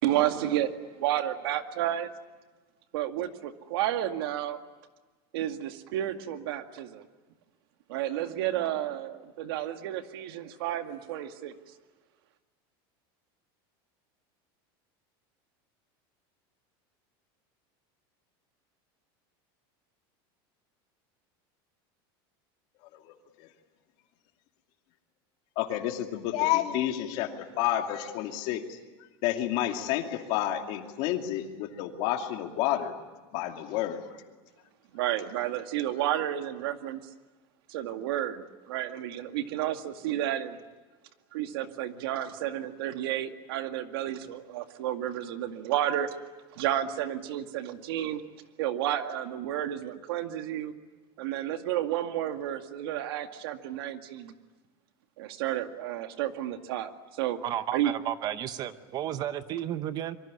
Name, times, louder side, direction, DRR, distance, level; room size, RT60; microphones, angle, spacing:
voice 1, 0.0-2.1 2.9-4.6 5.3-7.0 7.9-11.5 34.9-37.0 37.7-40.6 41.3-46.1 46.5-48.2 48.6-50.7 51.2-54.3 55.2-57.4 57.7-57.9, right 12 dB, 80° right, 7 dB, 2.1 m, -31 dB
voice 2, 22.9-23.5 25.6-28.8 29.2-32.9 33.3-34.0, left 12 dB, 50° left, 4 dB, 2.6 m, -30 dB
voice 3, 57.4-60.2, right 11 dB, 30° right, 12 dB, 0.9 m, -33 dB
26.0 x 23.5 x 9.8 m, 1.3 s
supercardioid pair, 170°, 12 cm